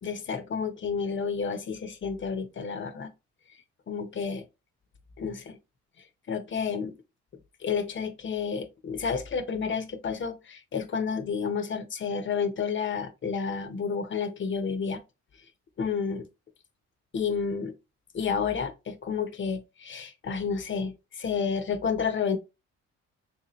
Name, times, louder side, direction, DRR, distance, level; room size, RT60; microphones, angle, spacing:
voice 1, 0.0-3.1 3.9-4.4 5.2-5.6 6.3-6.9 7.6-15.0 15.8-16.3 17.1-17.7 18.1-22.4, left 6 dB, 40° left, 0.7 m, -30 dB
3.4 x 2.8 x 3.0 m
cardioid pair, 90°, 30 cm